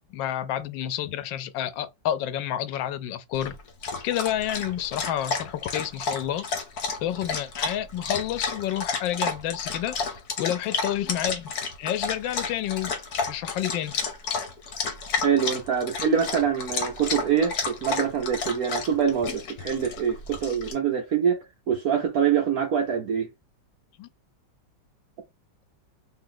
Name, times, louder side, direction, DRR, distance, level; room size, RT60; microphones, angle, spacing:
voice 1, 0.1-3.5 4.0-6.5 7.0-11.5 11.8-12.9 13.3-14.0 24.0-24.1, left 11 dB, 85° left, 1.3 m, -29 dB
Dog, 3.3-20.7, left 4 dB, 60° left, 1.4 m, -31 dB
voice 2, 15.2-23.3, right 7 dB, 60° right, 1.1 m, -25 dB
3.3 x 2.9 x 3.7 m
omnidirectional pair, 2.0 m